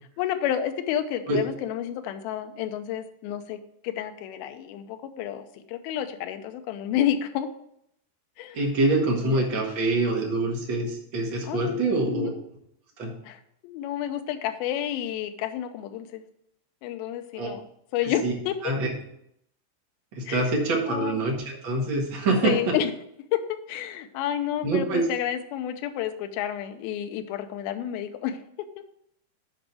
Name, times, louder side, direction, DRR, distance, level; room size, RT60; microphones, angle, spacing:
voice 1, 0.2-3.6 3.8-7.5 8.4-8.6 9.2-9.4 11.5-12.4 13.3-16.2 16.8-17.6 17.9-18.5 20.3-20.4 20.9-21.2 22.4-22.9 23.3-23.4 23.7-28.4, left 10 dB, 80° left, 7 dB, 2.5 m, -30 dB
voice 2, 8.5-12.3 13.0-13.1 17.4-17.5 18.0-18.3 18.6-18.9 20.1-22.6 24.6-25.0, right 2 dB, 45° right, -1 dB, 1.7 m, -25 dB
7.5 x 5.1 x 6.0 m, 0.75 s
omnidirectional pair, 4.5 m